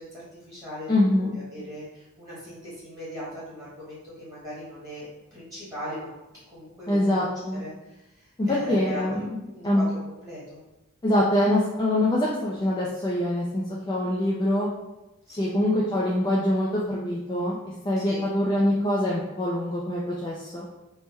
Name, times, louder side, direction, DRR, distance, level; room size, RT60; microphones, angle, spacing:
voice 1, 0.0-5.0 5.3-6.1 6.5-7.3 7.6-9.1 9.4-10.6 15.3-15.6 18.0-18.3, equal, 15° right, -9 dB, 1.2 m, -39 dB
voice 2, 0.9-1.3 6.9-7.6 8.4-9.3 9.6-9.8 11.0-14.7 15.4-17.6 17.8-20.6, left 1 dB, 20° left, -5 dB, 0.3 m, -24 dB
3.3 x 2.1 x 3.1 m, 1.0 s
head